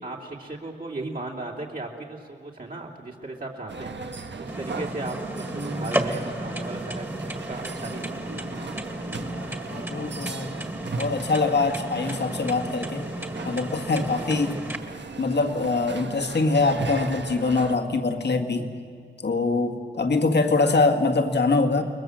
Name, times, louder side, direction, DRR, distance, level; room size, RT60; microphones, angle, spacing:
voice 1, 0.0-5.2 5.5-7.1 7.5-8.7 13.9-14.9, right 2 dB, 50° right, -2 dB, 2.8 m, -37 dB
sound 1, 3.7-17.8, right 4 dB, 70° right, 1.5 m, -37 dB
sound 2, 4.5-14.8, right 1 dB, 10° right, 2.0 m, -33 dB
voice 2, 9.2-10.5 11.0-13.1 13.4-14.6 15.2-18.7 19.2-21.8, left 3 dB, 65° left, 5 dB, 2.0 m, -24 dB
29.0 x 21.5 x 7.7 m, 2.2 s
wide cardioid pair, 120°, 19 cm